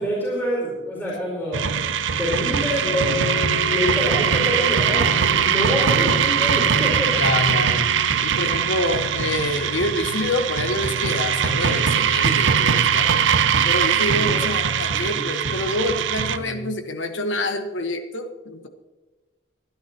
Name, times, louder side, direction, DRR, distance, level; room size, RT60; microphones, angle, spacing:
voice 1, 0.0-1.7 2.2-3.3 3.6-7.2 14.2-14.6 14.9-15.3 16.3-16.7, equal, 10° left, -6 dB, 4.7 m, -27 dB
sound 1, 1.5-16.4, right 7 dB, 75° right, 0.6 m, -21 dB
sound 2, 2.8-11.1, left 2 dB, 45° left, 1.7 m, -34 dB
voice 2, 7.1-13.1 13.6-18.7, left 1 dB, 75° left, 7 dB, 1.2 m, -27 dB
25.5 x 10.5 x 2.9 m, 1.2 s
head